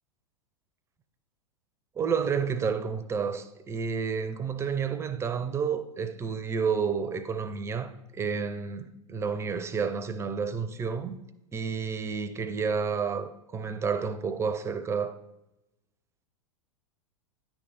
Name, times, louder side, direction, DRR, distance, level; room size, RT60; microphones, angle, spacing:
voice 1, 2.0-11.2 11.5-15.1, right 6 dB, 15° right, 0.4 m, -30 dB
9.8 x 3.3 x 4.2 m
figure-of-eight pair, 95°, 18 cm